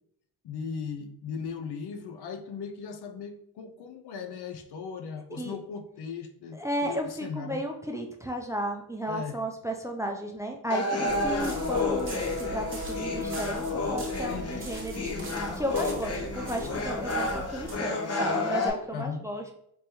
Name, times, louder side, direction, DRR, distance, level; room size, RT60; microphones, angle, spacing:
voice 1, 0.4-7.6 9.1-9.4 14.2-14.7 18.9-19.3, left 6 dB, 70° left, 7 dB, 0.6 m, -38 dB
voice 2, 6.6-19.5, right 1 dB, 10° right, 2 dB, 0.4 m, -34 dB
sound 1, 10.7-18.7, left 2 dB, 35° left, 0.8 m, -30 dB
sound 2, 11.1-17.7, right 1 dB, 30° right, 1.0 m, -41 dB
3.4 x 3.0 x 2.9 m, 0.73 s
cardioid pair, 80°, 41 cm